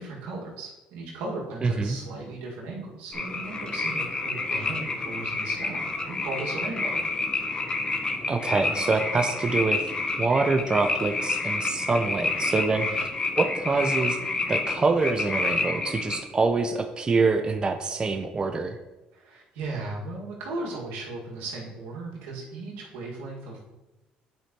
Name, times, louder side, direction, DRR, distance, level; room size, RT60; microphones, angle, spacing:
voice 1, 0.0-7.0 12.7-13.0 19.1-23.6, right 3 dB, 85° right, -3 dB, 1.8 m, -37 dB
voice 2, 1.6-2.0 8.3-9.9 10.2-13.1 13.4-14.2 14.5-18.8, right 4 dB, 30° right, 6 dB, 0.6 m, -25 dB
sound 1, 3.1-16.2, left 3 dB, 30° left, 0.9 m, -29 dB
9.2 x 5.0 x 2.9 m, 1.0 s
supercardioid pair, 85°, 3 cm